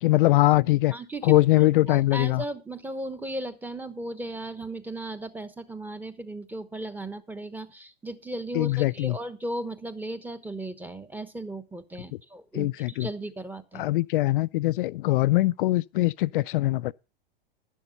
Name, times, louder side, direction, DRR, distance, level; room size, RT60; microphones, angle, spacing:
voice 1, 0.0-0.9 1.2-2.4 8.5-9.2 12.5-13.1 13.7-16.9, left 18 dB, 60° left, 0.5 m, -22 dB
voice 2, 0.9-13.9, right 1 dB, 5° right, 1.0 m, -36 dB
11.0 x 11.0 x 3.9 m
hypercardioid pair, 120°, 29 cm